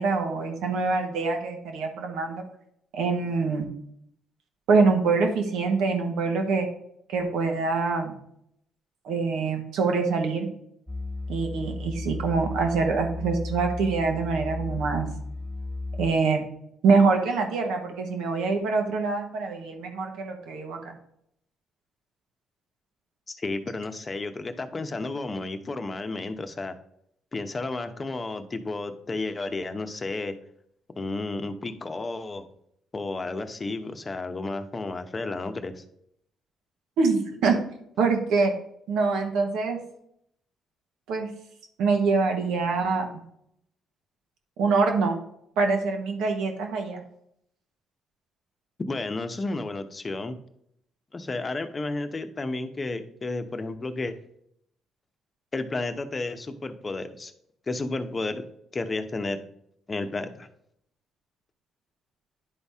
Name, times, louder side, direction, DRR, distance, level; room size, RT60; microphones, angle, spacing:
voice 1, 0.0-2.4 2.9-3.7 4.7-6.7 7.1-8.1 9.0-10.5 11.3-15.1 16.0-16.5 16.8-20.9 37.0-37.6 38.0-38.5 38.9-39.8 41.1-41.3 41.8-43.1 44.6-45.2 45.6-47.0, right 4 dB, 80° right, 3 dB, 1.4 m, -24 dB
sound 1, 10.9-16.1, left 2 dB, 5° right, 1.2 m, -34 dB
voice 2, 23.3-26.7 27.3-30.3 31.0-32.4 32.9-35.8 48.9-50.4 51.1-54.2 55.5-57.3 57.7-58.4 58.7-59.4 59.9-60.5, left 3 dB, 30° left, 8 dB, 0.8 m, -32 dB
10.5 x 4.1 x 3.6 m, 0.72 s
supercardioid pair, 70°, 0 cm